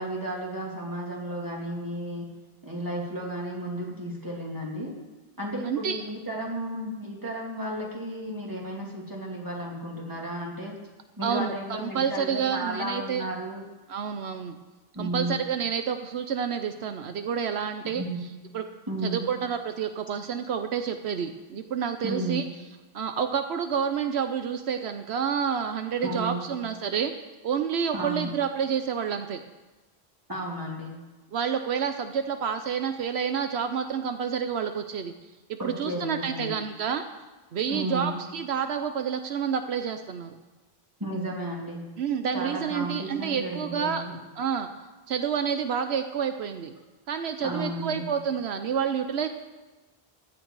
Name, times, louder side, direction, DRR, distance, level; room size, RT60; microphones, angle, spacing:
voice 1, 0.0-2.3 2.6-4.9 5.4-10.8 11.2-13.6 14.9-15.4 17.9-18.2 18.9-19.2 22.0-22.4 26.0-26.5 27.9-28.3 30.3-31.0 35.6-36.5 37.7-38.2 41.0-41.8 42.3-44.2 47.4-48.1, right 1 dB, 20° right, -3 dB, 2.8 m, -33 dB
voice 2, 5.6-6.0 11.2-11.5 11.8-13.2 13.9-14.6 15.0-18.0 18.5-18.6 19.0-22.4 22.9-27.1 27.4-29.4 31.3-35.1 35.5-37.0 37.5-40.3 42.0-44.0 44.4-44.7 45.1-46.7 47.1-49.3, right 7 dB, 80° right, 7 dB, 1.0 m, -29 dB
15.5 x 11.5 x 4.7 m, 1.2 s
omnidirectional pair, 1.1 m